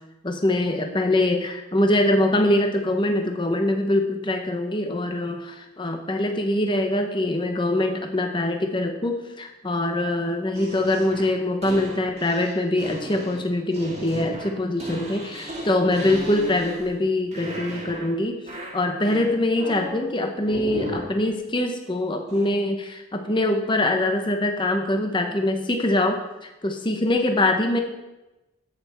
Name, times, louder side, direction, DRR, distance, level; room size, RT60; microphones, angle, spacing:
voice 1, 0.2-18.4 18.7-27.8, left 1 dB, 25° left, 5 dB, 0.9 m, -23 dB
sound 1, 10.5-17.0 17.3-18.2 18.5-20.0 20.4-21.2 22.3-22.5, equal, 30° right, 1.8 m, -36 dB
13.0 x 5.7 x 4.3 m, 1.0 s
head